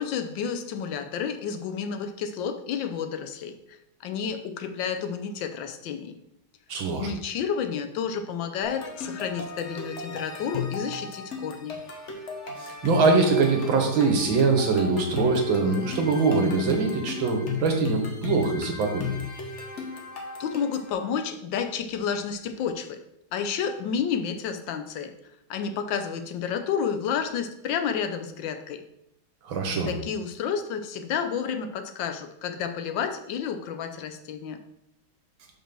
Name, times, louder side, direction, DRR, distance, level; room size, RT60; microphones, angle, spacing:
voice 1, 0.0-6.1 7.0-11.8 20.4-23.0 23.3-25.1 25.5-28.8 29.9-34.6, left 7 dB, 70° left, 8 dB, 1.3 m, -30 dB
voice 2, 6.7-7.1 12.6-19.1 29.4-29.9, right 4 dB, 75° right, 3 dB, 1.9 m, -23 dB
sound 1, 8.6-20.9, left 5 dB, 45° left, 1.1 m, -36 dB
5.4 x 4.6 x 6.1 m, 0.79 s
omnidirectional pair, 2.2 m